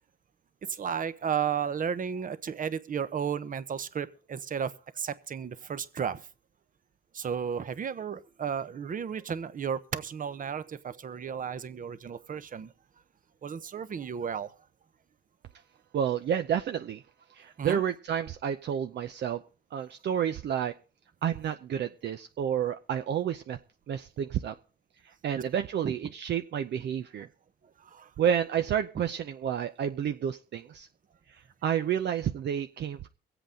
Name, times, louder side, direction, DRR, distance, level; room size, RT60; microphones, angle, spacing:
voice 1, 0.6-6.2 7.1-12.7 13.4-14.5 17.6-17.8 25.8-25.9 27.8-28.1, right 7 dB, 45° right, 0.9 m, -33 dB
voice 2, 15.9-17.0 17.3-19.4 19.7-20.7 21.2-23.6 23.9-24.5 25.2-27.3 28.2-30.9 31.3-33.1, right 9 dB, 60° right, 0.6 m, -30 dB
23.5 x 8.0 x 3.8 m
cardioid pair, 90°, 20 cm